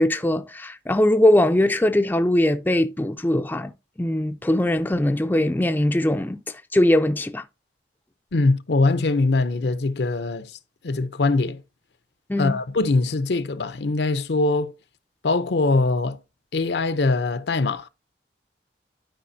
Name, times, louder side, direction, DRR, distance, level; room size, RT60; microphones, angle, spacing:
voice 1, 0.0-3.7 4.0-7.4 12.3-12.6, left 1 dB, 10° left, 0.4 m, -21 dB
voice 2, 8.3-10.5 10.8-11.6 12.4-14.7 15.2-16.2 16.5-17.9, left 3 dB, 70° left, 0.6 m, -22 dB
11.5 x 4.9 x 2.7 m
head